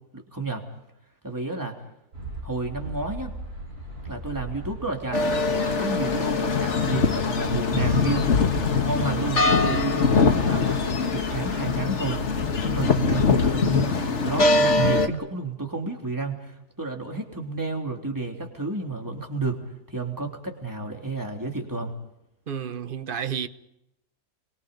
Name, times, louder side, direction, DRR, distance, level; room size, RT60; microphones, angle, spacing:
voice 1, 0.1-0.6 1.2-1.7 2.4-3.3 4.0-5.3 5.8-8.3 8.8-12.3 12.6-19.6 19.9-21.9, right 3 dB, 10° right, 3.2 m, -31 dB
sound 1, 2.1-13.6, right 1 dB, 85° right, 6.0 m, -38 dB
sound 2, 5.1-15.1, left 4 dB, 50° left, 1.7 m, -22 dB
voice 2, 9.6-9.9 22.5-23.5, right 8 dB, 40° right, 1.0 m, -31 dB
30.0 x 23.5 x 5.3 m
omnidirectional pair, 1.6 m